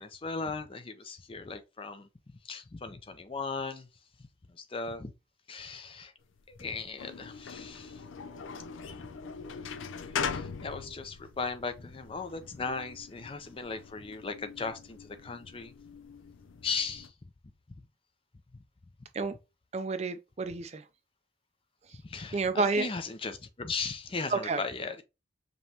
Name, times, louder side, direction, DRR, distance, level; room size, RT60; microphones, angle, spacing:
voice 1, 0.0-2.1 2.4-3.9 4.5-5.1 5.5-6.1 6.5-8.0 8.8-9.0 10.1-15.7 16.6-17.1 18.5-18.6 22.0-25.0, left 4 dB, 30° left, 0.4 m, -37 dB
sound 1, 6.4-17.1, left 6 dB, 90° left, 0.5 m, -41 dB
voice 2, 19.7-20.8 22.3-22.9 24.3-24.6, right 4 dB, 35° right, 0.4 m, -30 dB
5.2 x 2.9 x 2.7 m
head